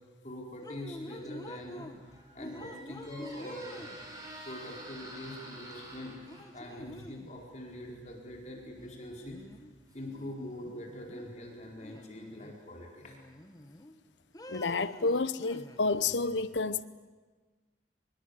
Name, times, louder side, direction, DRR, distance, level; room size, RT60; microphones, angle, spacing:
voice 1, 0.2-3.9 4.4-9.4 9.9-13.2, left 1 dB, 40° left, 4.6 m, -44 dB
sound 1, 0.6-2.0 2.4-4.3 5.7-5.8 6.3-7.4 8.7-9.7 10.0-11.3 11.8-12.6 13.0-13.9 14.3-16.1, left 1 dB, 20° left, 1.5 m, -48 dB
Squeak, 1.9-10.6, right 1 dB, 20° right, 5.3 m, -50 dB
voice 2, 14.5-16.8, left 3 dB, 85° left, 0.9 m, -30 dB
24.5 x 23.0 x 8.3 m
head